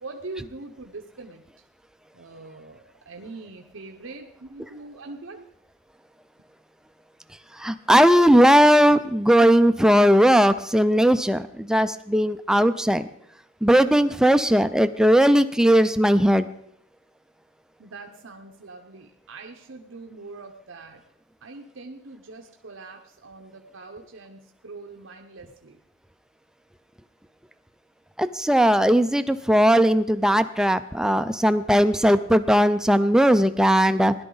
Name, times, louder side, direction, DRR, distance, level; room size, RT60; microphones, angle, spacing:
voice 1, 0.0-1.5 2.1-5.4 17.8-21.0 21.4-25.8, right 3 dB, 85° right, 3 dB, 0.9 m, -42 dB
voice 2, 7.5-13.1 13.6-16.5 28.2-34.1, equal, 5° right, 11 dB, 0.4 m, -18 dB
17.0 x 11.5 x 3.9 m, 0.73 s
head